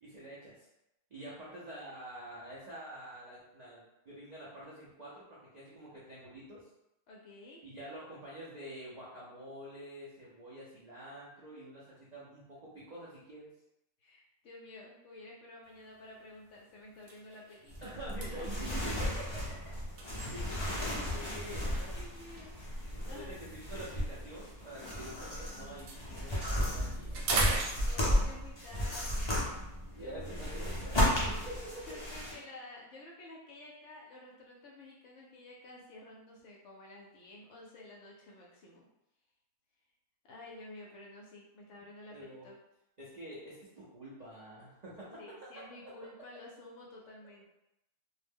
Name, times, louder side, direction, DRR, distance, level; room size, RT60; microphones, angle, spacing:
voice 1, 0.0-0.7 1.1-6.7 7.6-13.5 17.8-19.2 20.3-20.5 20.9-22.0 23.1-27.4 27.9-28.0 29.9-31.6 42.1-42.5 43.0-45.4, right 1 dB, 90° right, -7 dB, 0.3 m, -47 dB
voice 2, 7.1-7.6 14.0-18.5 21.2-21.6 22.0-23.4 27.4-29.5 29.9-30.8 31.9-38.9 40.2-42.6 45.0-47.4, left 2 dB, 65° left, -2 dB, 0.8 m, -52 dB
sound 1, 15.8-16.0 16.5-16.6 16.9-20.9 21.7-25.3 25.6-28.4, right 3 dB, 75° right, 1.0 m, -40 dB
sound 2, 17.7-32.3, left 1 dB, 45° left, 0.3 m, -34 dB
2.5 x 2.1 x 3.4 m, 0.88 s
omnidirectional pair, 1.6 m